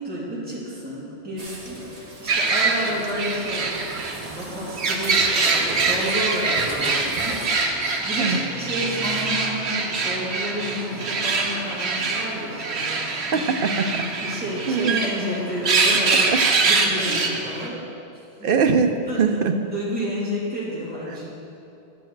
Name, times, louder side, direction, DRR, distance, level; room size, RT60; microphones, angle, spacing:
voice 1, 0.0-3.7 4.1-7.7 8.0-13.5 14.2-17.7 18.4-18.5 19.1-19.4 19.7-21.2, equal, 10° right, -9 dB, 2.6 m, -30 dB
sound 1, 1.4-7.5, right 1 dB, 35° right, 1.2 m, -38 dB
sound 2, 2.3-17.7, right 4 dB, 80° right, 1.2 m, -24 dB
voice 2, 13.3-14.1 14.7-14.9 16.3-16.4 17.1-17.2 18.4-19.6, right 5 dB, 60° right, 6 dB, 0.8 m, -22 dB
11.0 x 8.5 x 4.6 m, 2.7 s
omnidirectional pair, 1.1 m